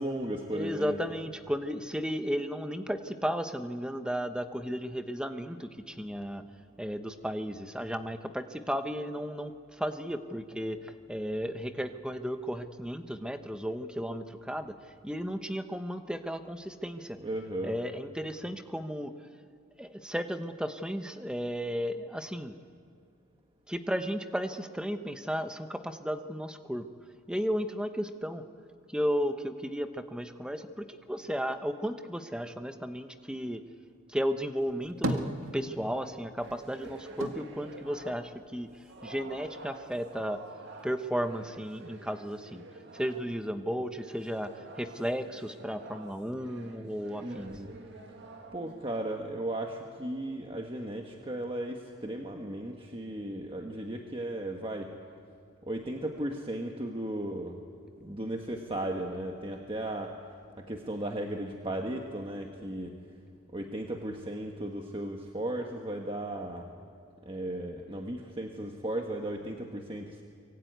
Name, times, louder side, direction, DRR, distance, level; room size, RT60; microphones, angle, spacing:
voice 1, 0.0-1.0 17.1-17.8 47.2-47.8 48.1-48.2 48.5-54.9 55.7-57.6 58.0-60.2 60.6-63.0 63.5-66.7 67.2-70.2, right 1 dB, 25° right, 2 dB, 1.4 m, -36 dB
voice 2, 0.5-6.4 6.8-17.2 17.6-19.1 19.8-22.5 23.7-26.9 27.3-28.4 28.9-33.6 34.1-40.4 40.8-42.6 42.9-44.5 44.8-47.5, equal, 5° right, 8 dB, 1.0 m, -34 dB
sound 1, 34.6-36.1 36.4-38.8 39.1-40.0, right 1 dB, 75° right, 1.9 m, -36 dB
sound 2, 36.4-38.5 38.9-43.4 43.9-49.3, right 2 dB, 55° right, 2.2 m, -49 dB
24.0 x 23.5 x 9.3 m, 2.2 s
head